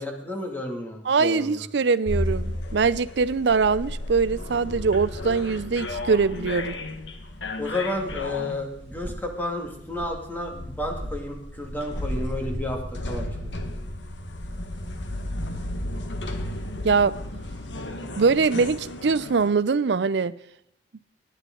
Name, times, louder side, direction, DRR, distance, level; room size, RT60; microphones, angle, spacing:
voice 1, 0.0-1.7 7.6-13.5, left 1 dB, 10° left, 2.2 m, -32 dB
voice 2, 1.1-6.7 16.8-17.2 18.2-20.3, right 4 dB, 70° right, 0.5 m, -22 dB
sound 1, 2.1-19.5, left 1 dB, 90° left, 1.5 m, -34 dB
sound 2, 7.8-13.2, equal, 40° right, 1.7 m, -43 dB
19.5 x 10.0 x 3.8 m
head